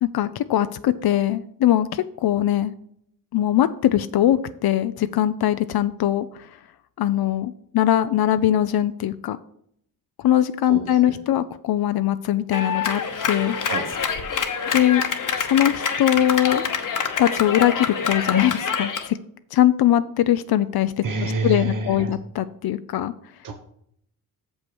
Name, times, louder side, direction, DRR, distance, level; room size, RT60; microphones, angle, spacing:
voice 1, 0.0-2.7 3.3-6.5 7.0-9.4 10.2-13.0 13.3-13.6 14.7-15.0 15.4-16.6 17.2-19.2 19.5-23.1, left 12 dB, 80° left, 12 dB, 0.5 m, -21 dB
voice 2, 10.7-11.2 13.7-13.9 21.0-22.2 23.4-23.5, right 3 dB, 60° right, 4 dB, 1.0 m, -27 dB
Clapping, 12.5-19.1, left 6 dB, 60° left, 1.0 m, -26 dB
7.0 x 5.4 x 6.1 m, 0.70 s
cardioid pair, 90°, 36 cm